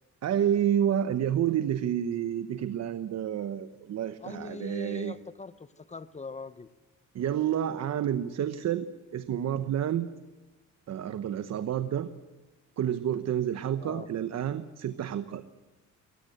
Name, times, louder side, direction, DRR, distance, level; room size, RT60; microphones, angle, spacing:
voice 1, 0.2-5.1 7.1-8.9 9.1-10.1 10.9-12.1 12.8-15.4, right 10 dB, 60° right, 1.0 m, -29 dB
voice 2, 4.2-6.7 13.8-14.1, left 3 dB, 25° left, 1.0 m, -42 dB
23.5 x 19.0 x 7.8 m
cardioid pair, 90°, 30 cm